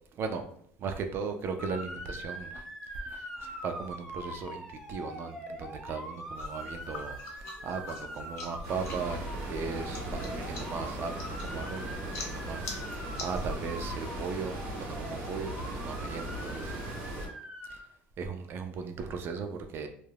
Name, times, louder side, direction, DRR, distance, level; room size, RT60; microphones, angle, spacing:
voice 1, 0.1-0.4 0.8-2.6 2.9-16.8 17.7-17.8 18.2-19.9, right 5 dB, 50° right, 0.5 m, -37 dB
Motor vehicle (road) / Siren, 1.6-17.8, equal, 5° left, 0.8 m, -43 dB
sound 1, 6.3-14.0, left 3 dB, 60° left, 0.8 m, -45 dB
sound 2, 8.6-17.3, right 1 dB, 85° right, 0.9 m, -38 dB
2.4 x 2.1 x 3.3 m
supercardioid pair, 100°, 5 cm